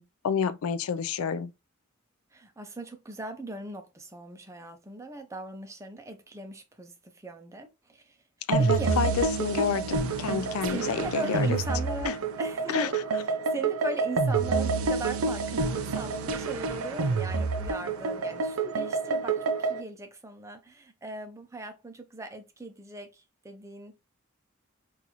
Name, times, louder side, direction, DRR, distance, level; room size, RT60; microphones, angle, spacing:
voice 1, 0.0-1.5 8.5-11.6 12.1-12.2 12.7-12.9, left 6 dB, 80° left, 0.4 m, -29 dB
voice 2, 2.3-8.2 8.6-9.0 10.6-24.0, right 2 dB, 15° right, 0.5 m, -39 dB
sound 1, 8.5-19.8, right 4 dB, 80° right, 0.5 m, -28 dB
3.9 x 2.5 x 2.9 m
head